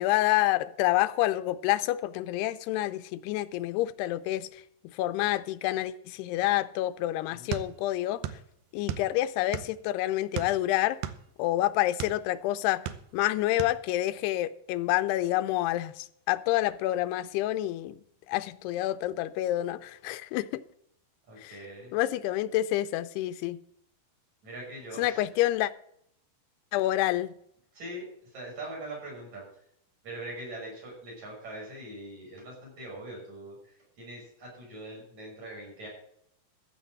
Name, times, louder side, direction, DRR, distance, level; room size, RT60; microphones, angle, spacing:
voice 1, 0.0-4.6 4.9-8.4 8.7-11.0 11.4-12.9 13.1-18.0 18.3-20.6 21.4-21.5 21.9-23.6 25.0-25.7 26.7-27.3, left 15 dB, 90° left, 13 dB, 2.7 m, -28 dB
voice 2, 7.3-7.6 21.3-22.0 24.4-25.2 27.7-29.5 30.0-35.9, right 1 dB, 45° right, -3 dB, 7.3 m, -42 dB
sound 1, 7.5-8.5 8.7-9.9 10.3-12.2 12.7-13.3 13.6-13.8, right 11 dB, 75° right, 2.1 m, -35 dB
14.5 x 6.2 x 7.6 m, 0.70 s
omnidirectional pair, 4.6 m